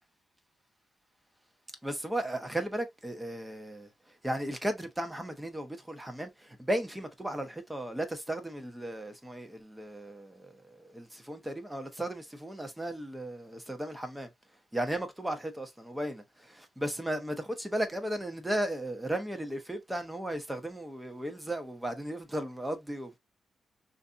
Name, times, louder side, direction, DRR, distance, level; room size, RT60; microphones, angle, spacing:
voice 1, 1.8-3.9 4.2-14.3 14.7-23.2, right 1 dB, 10° right, 0.9 m, -35 dB
3.3 x 2.6 x 2.6 m
cardioid pair, 90°, 0 cm